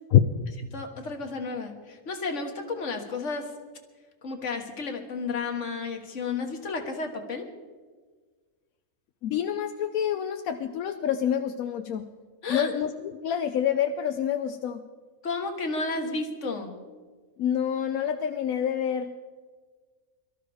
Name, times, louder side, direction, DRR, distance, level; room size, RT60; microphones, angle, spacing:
voice 1, 0.7-3.5 4.2-7.5 12.4-12.8 15.2-16.7, left 3 dB, 60° left, 4 dB, 1.7 m, -32 dB
voice 2, 9.2-12.1 12.5-14.8 17.4-19.1, left 9 dB, 85° left, 7 dB, 1.1 m, -26 dB
23.0 x 13.0 x 3.5 m, 1.5 s
omnidirectional pair, 1.4 m